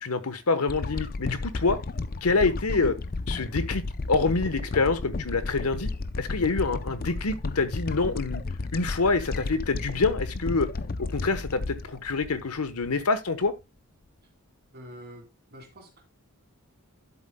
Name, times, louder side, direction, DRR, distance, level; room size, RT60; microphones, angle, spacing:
voice 1, 0.0-1.8 2.2-2.9 3.3-3.8 4.1-5.9 6.2-8.4 8.7-10.7 11.0-13.5, left 3 dB, 90° left, 1.1 m, -26 dB
sound 1, 0.7-13.0 13.5-13.6, left 3 dB, 40° left, 0.5 m, -33 dB
voice 2, 14.7-16.0, equal, 45° right, 2.8 m, -46 dB
11.5 x 8.1 x 2.2 m
head